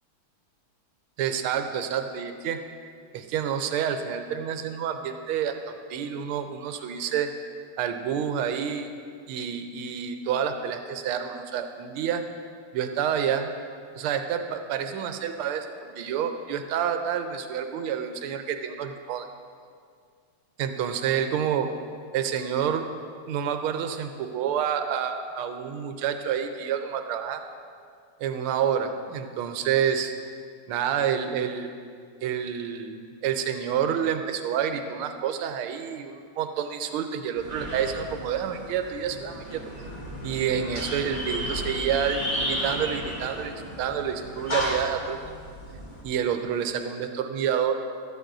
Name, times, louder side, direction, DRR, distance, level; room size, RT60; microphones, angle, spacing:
voice 1, 1.2-2.6 3.1-7.3 7.8-8.9 9.3-12.2 12.7-13.5 13.9-19.3 20.6-21.7 22.1-22.9 23.3-27.4 28.2-30.1 30.7-31.7 32.2-39.6 40.2-45.2 46.0-47.8, right 8 dB, 85° right, 7 dB, 1.5 m, -28 dB
sound 1, 37.4-46.0, equal, 35° left, 2.8 m, -33 dB
13.5 x 13.5 x 2.6 m, 2.1 s
omnidirectional pair, 2.4 m